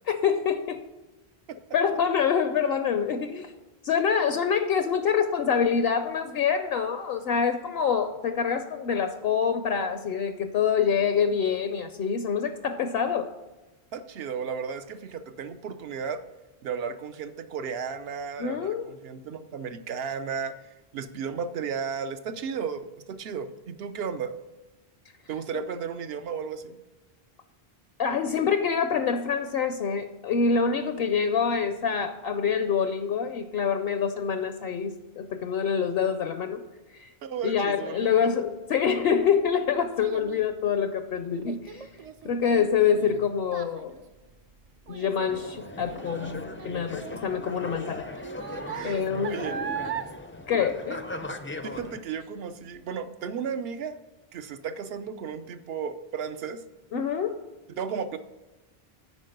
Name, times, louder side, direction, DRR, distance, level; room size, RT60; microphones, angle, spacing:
voice 1, 0.1-0.8 1.7-3.5 3.8-13.3 18.4-18.9 25.5-25.6 28.0-36.6 36.9-37.1 37.4-41.9 42.2-43.9 44.9-48.0 48.8-49.4 50.5-51.1 56.9-57.4, left 7 dB, 70° left, 9 dB, 0.8 m, -26 dB
voice 2, 13.9-16.2 16.6-20.6 20.9-24.3 25.3-26.8 37.2-38.1 47.3-47.5 48.7-49.6 51.6-54.0 54.3-56.6 57.7-58.2, right 6 dB, 70° right, 10 dB, 0.9 m, -34 dB
Child speech kid speaking, 38.8-51.5 51.8-52.2 52.7-52.8, right 8 dB, 50° right, 0.4 m, -40 dB
sound 1, 45.3-52.0, left 2 dB, 20° left, 0.3 m, -38 dB
9.8 x 4.6 x 6.6 m, 1.1 s
omnidirectional pair, 1.1 m